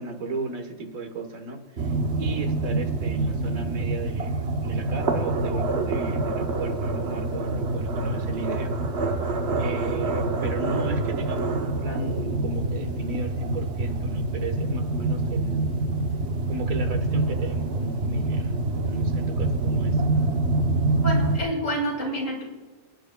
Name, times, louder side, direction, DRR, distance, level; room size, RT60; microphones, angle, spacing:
voice 1, 0.0-8.7 9.6-15.6 16.5-20.0, right 3 dB, 70° right, 6 dB, 1.6 m, -35 dB
sound 1, 1.8-21.4, right 2 dB, 55° right, 1.0 m, -26 dB
voice 2, 21.0-22.4, right 1 dB, 60° left, 1 dB, 2.5 m, -28 dB
27.0 x 9.4 x 2.2 m, 1.3 s
omnidirectional pair, 1.5 m